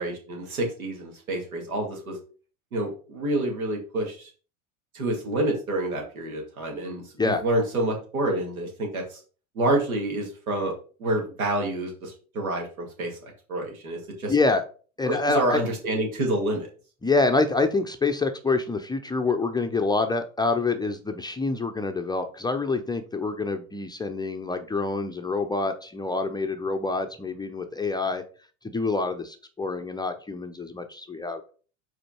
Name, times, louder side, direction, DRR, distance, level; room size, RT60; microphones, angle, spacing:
voice 1, 0.0-2.2 2.7-4.3 4.9-9.2 9.5-10.7 11.0-14.3 15.0-16.7, right 1 dB, 85° right, 1 dB, 2.5 m, -28 dB
voice 2, 14.3-14.6 15.0-15.6 17.0-28.2 28.6-31.5, left 3 dB, 10° left, 6 dB, 0.5 m, -26 dB
5.1 x 4.4 x 4.4 m, 0.39 s
hypercardioid pair, 90°, 41 cm